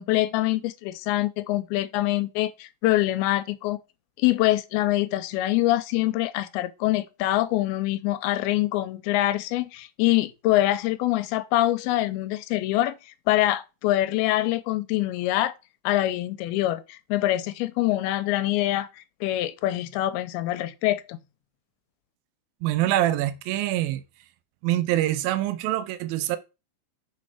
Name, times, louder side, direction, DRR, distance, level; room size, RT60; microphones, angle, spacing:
voice 1, 0.0-3.8 4.2-15.6 15.9-21.2, left 15 dB, 90° left, 2.5 m, -25 dB
voice 2, 22.6-24.0 24.6-26.4, right 14 dB, 80° right, 2.4 m, -25 dB
6.4 x 4.3 x 4.8 m
omnidirectional pair, 4.4 m